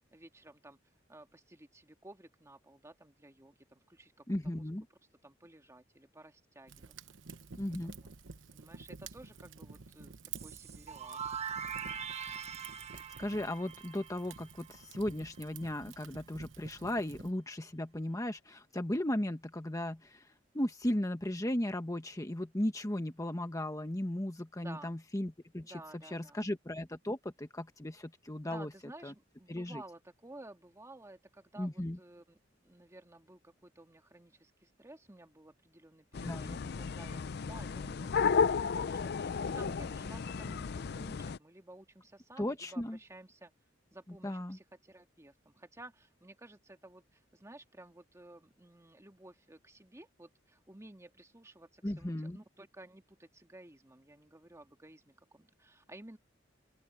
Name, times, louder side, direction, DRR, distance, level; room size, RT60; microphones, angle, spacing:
voice 1, 0.1-0.8 1.1-4.7 5.2-6.9 7.8-8.1 8.5-10.1 10.4-11.4 12.3-12.7 16.8-16.9 24.6-25.0 25.6-26.5 28.4-32.4 32.6-43.5 43.9-56.2, right 1 dB, 15° right, 1.9 m, -54 dB
voice 2, 4.3-4.8 7.6-7.9 12.9-20.3 20.5-25.7 26.1-28.7 29.0-29.1 29.5-29.8 31.6-32.0 36.2-36.6 42.4-43.0 44.2-44.6 51.8-52.4, left 1 dB, 20° left, 1.2 m, -36 dB
Fire, 6.7-17.3, right 5 dB, 90° right, 1.0 m, -50 dB
sound 1, 10.3-15.1, right 7 dB, 35° right, 1.1 m, -42 dB
sound 2, 36.1-41.4, left 5 dB, 60° left, 0.5 m, -33 dB
open air
head